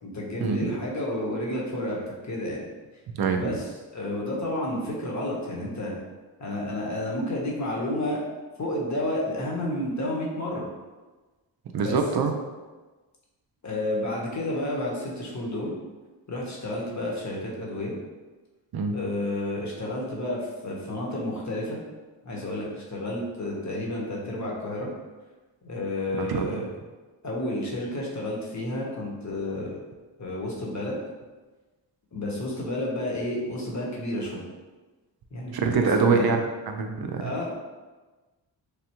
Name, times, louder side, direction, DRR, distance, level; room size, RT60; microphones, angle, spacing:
voice 1, 0.0-2.6 3.3-5.9 6.4-8.2 8.6-10.6 11.8-12.0 13.6-15.7 16.3-17.9 18.9-21.8 22.2-24.9 25.6-26.7 27.2-29.8 30.2-31.0 32.1-34.4 35.3-36.3 37.2-37.6, left 1 dB, 35° left, -3 dB, 1.0 m, -31 dB
voice 2, 3.2-3.5 11.7-12.3 18.7-19.0 26.2-26.6 35.5-36.4 36.7-37.3, right 5 dB, 55° right, 4 dB, 0.5 m, -24 dB
3.3 x 2.2 x 2.9 m, 1.3 s
cardioid pair, 55°, 46 cm